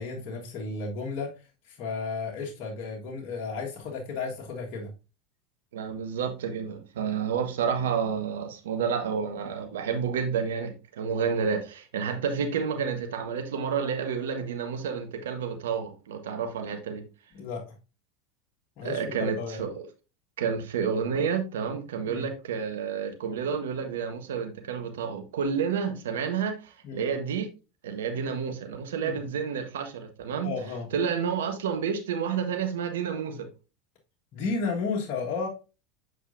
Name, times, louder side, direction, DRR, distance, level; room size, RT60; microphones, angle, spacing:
voice 1, 0.0-4.9 17.3-17.8 18.8-19.7 22.0-22.3 26.8-27.1 29.0-29.2 30.4-30.9 34.3-35.5, left 4 dB, 50° left, 1.5 m, -33 dB
voice 2, 5.7-17.0 18.8-19.9 20.4-27.5 27.8-30.5 30.9-33.5, right 6 dB, 75° right, 1.3 m, -30 dB
7.8 x 5.3 x 2.6 m
hypercardioid pair, 85°, 0 cm